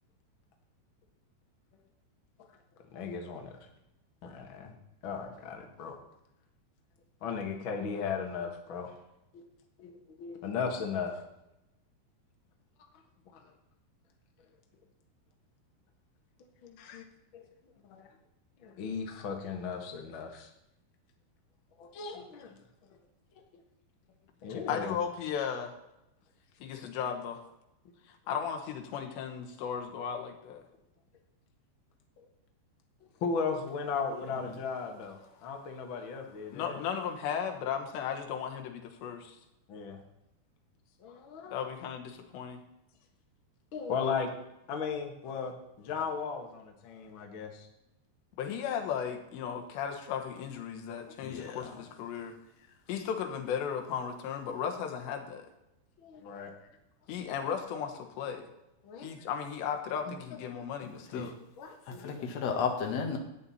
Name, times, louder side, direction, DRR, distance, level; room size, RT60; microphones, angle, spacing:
voice 1, 2.9-3.6 4.2-4.7 5.0-6.0 7.2-9.0 9.3-9.4 9.8-11.2 13.3-13.4 16.6-17.0 17.3-17.4 17.8-18.1 18.6-20.5 21.8-22.5 24.4-24.9 32.2-32.3 33.2-36.8 39.7-40.0 41.0-41.6 43.7-44.3 44.7-47.7 56.0-56.5 58.3-58.4 58.8-59.1 60.1-60.2 61.6-62.2, left 5 dB, 70° left, 2 dB, 1.2 m, -36 dB
voice 2, 24.5-25.7 26.6-27.4 28.1-30.6 36.5-39.4 41.5-42.6 48.4-52.4 52.9-55.5 57.1-58.5 59.0-61.3, left 7 dB, 90° left, 4 dB, 3.5 m, -36 dB
voice 3, 51.2-51.7 61.1-61.3 62.0-63.2, left 6 dB, 55° left, 2 dB, 2.2 m, -33 dB
14.0 x 9.2 x 4.2 m, 0.89 s
omnidirectional pair, 4.8 m